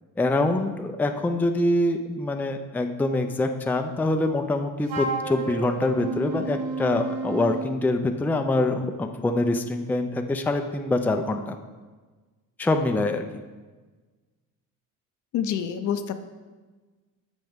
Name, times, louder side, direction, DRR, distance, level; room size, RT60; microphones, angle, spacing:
voice 1, 0.2-11.6 12.6-13.4, left 2 dB, 5° left, 5 dB, 0.4 m, -25 dB
Wind instrument woodwind instrument, 4.9-7.7, right 3 dB, 70° right, 1.1 m, -31 dB
voice 2, 15.3-16.2, left 8 dB, 60° left, 9 dB, 0.7 m, -27 dB
13.5 x 5.2 x 3.6 m, 1.3 s
cardioid pair, 115°, 34 cm